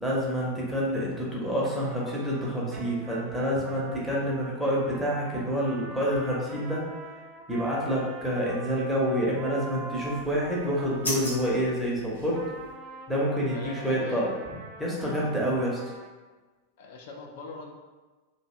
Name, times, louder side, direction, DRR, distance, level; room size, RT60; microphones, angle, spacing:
voice 1, 0.0-6.8 7.5-12.4 13.1-14.3 14.8-15.8, equal, ahead, -6 dB, 0.7 m, -28 dB
Trumpet, 1.6-11.8 12.3-16.1, right 3 dB, 35° right, 0.3 m, -44 dB
sound 1, 9.9-12.7, left 1 dB, 75° left, 0.9 m, -38 dB
voice 2, 13.5-14.4 16.8-17.7, left 4 dB, 50° left, 1 dB, 0.4 m, -41 dB
2.6 x 2.1 x 2.5 m, 1.3 s
figure-of-eight pair, 90°, 0 cm